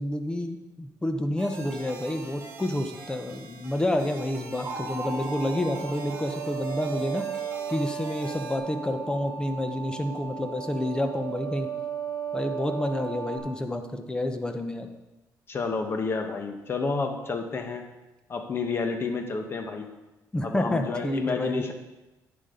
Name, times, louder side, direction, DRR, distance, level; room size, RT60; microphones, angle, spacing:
voice 1, 0.0-7.3 7.7-11.7 12.3-14.9 20.3-21.6, left 1 dB, 10° left, 6 dB, 1.0 m, -29 dB
sound 1, 1.4-8.6, right 3 dB, 45° right, 3.4 m, -44 dB
sound 2, 4.6-13.4, right 7 dB, 25° right, 3.8 m, -35 dB
voice 2, 15.5-17.8 18.3-19.9 20.4-21.7, left 4 dB, 35° left, 5 dB, 1.3 m, -30 dB
11.0 x 10.0 x 3.9 m, 1.1 s
cardioid pair, 130°, 7 cm